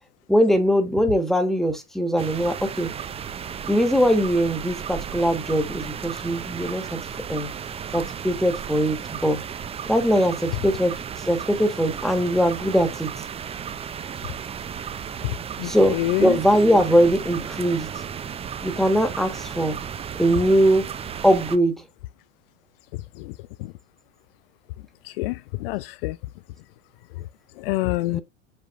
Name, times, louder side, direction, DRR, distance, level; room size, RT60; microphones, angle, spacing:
voice 1, 0.3-2.9 3.7-7.0 7.3-7.5 7.9-9.4 9.9-10.9 11.3-13.1 15.6-17.9 18.6-19.8 20.2-20.9 21.2-21.8 28.1-28.2, equal, ahead, 1.5 m, -21 dB
sound 1, 2.2-21.6, right 8 dB, 15° right, 0.6 m, -34 dB
voice 2, 15.6-16.3 25.2-26.2 27.6-28.2, left 18 dB, 50° left, 0.4 m, -26 dB
7.8 x 4.9 x 2.6 m
hypercardioid pair, 95°, 36 cm